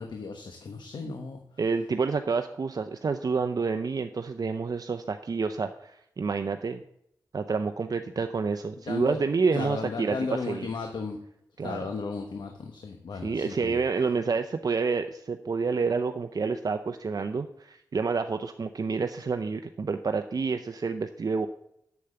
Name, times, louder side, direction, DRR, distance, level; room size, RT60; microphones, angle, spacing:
voice 1, 0.0-1.4 8.9-9.2 9.5-11.2 11.6-13.8, left 4 dB, 80° left, 4 dB, 1.1 m, -35 dB
voice 2, 1.6-6.8 7.3-10.7 11.6-11.9 13.2-21.5, right 4 dB, 55° right, 7 dB, 0.6 m, -29 dB
8.4 x 7.0 x 7.8 m, 0.76 s
cardioid pair, 55°, 8 cm